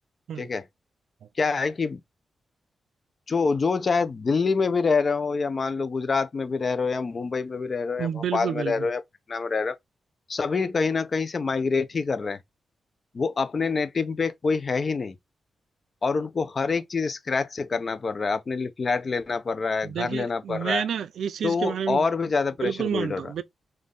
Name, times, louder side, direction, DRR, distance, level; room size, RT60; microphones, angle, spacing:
voice 1, 1.4-2.0 3.3-9.0 9.3-9.7 10.3-12.4 13.1-15.1 16.0-20.9 21.4-23.3, left 4 dB, 40° left, 0.6 m, -26 dB
voice 2, 8.0-8.9 19.8-22.1 22.6-23.4, right 8 dB, 90° right, 0.5 m, -29 dB
5.4 x 2.6 x 3.7 m
wide cardioid pair, 115°, 0 cm